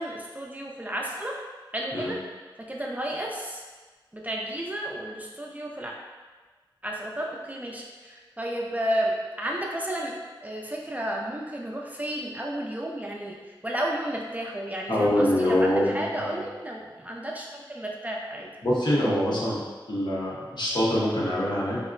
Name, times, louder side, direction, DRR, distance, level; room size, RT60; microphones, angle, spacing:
voice 1, 0.0-1.4 1.7-2.2 2.7-3.6 4.1-5.9 6.8-10.1 10.4-18.5, right 1 dB, 20° right, -2 dB, 0.3 m, -32 dB
voice 2, 14.9-16.4 18.6-19.6 19.9-21.8, left 1 dB, 60° left, -6 dB, 0.8 m, -24 dB
3.5 x 2.0 x 2.4 m, 1.3 s
wide cardioid pair, 65°, 9 cm